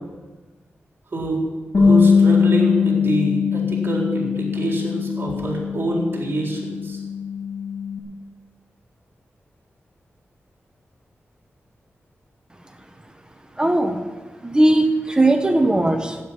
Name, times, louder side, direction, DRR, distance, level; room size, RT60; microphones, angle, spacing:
voice 1, 1.1-1.4 1.8-7.0, right 1 dB, 50° right, 0 dB, 4.0 m, -25 dB
Bass guitar, 1.7-8.0, left 6 dB, 55° left, 2.3 m, -21 dB
voice 2, 13.6-14.0 14.4-16.2, right 1 dB, 15° right, 6 dB, 1.2 m, -18 dB
12.5 x 9.3 x 7.7 m, 1.3 s
wide cardioid pair, 95°, 5 cm